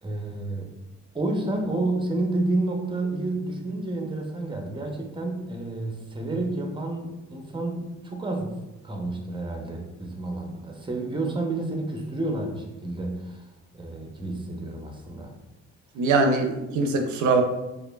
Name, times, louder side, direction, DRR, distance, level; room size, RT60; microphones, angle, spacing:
voice 1, 0.0-0.7 1.1-8.6 8.8-13.4 13.7-15.3, right 2 dB, 15° right, 2 dB, 0.7 m, -30 dB
voice 2, 16.0-17.4, right 3 dB, 75° right, 4 dB, 0.5 m, -22 dB
4.7 x 2.5 x 2.3 m, 1.0 s
cardioid pair, 90°, 30 cm